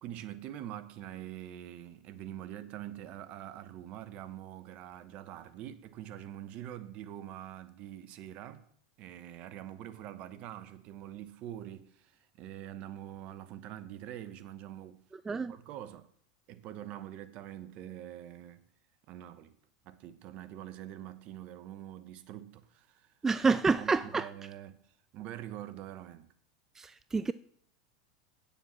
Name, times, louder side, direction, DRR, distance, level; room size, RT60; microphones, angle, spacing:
voice 1, 0.0-8.7 9.0-15.0 15.3-16.1 16.5-18.6 19.1-19.5 19.8-23.1 23.5-24.8 25.1-26.3, right 12 dB, 50° right, 1.0 m, -45 dB
voice 2, 23.2-24.3 26.8-27.3, right 4 dB, 15° right, 0.4 m, -28 dB
9.1 x 7.1 x 7.3 m
hypercardioid pair, 95°, 3 cm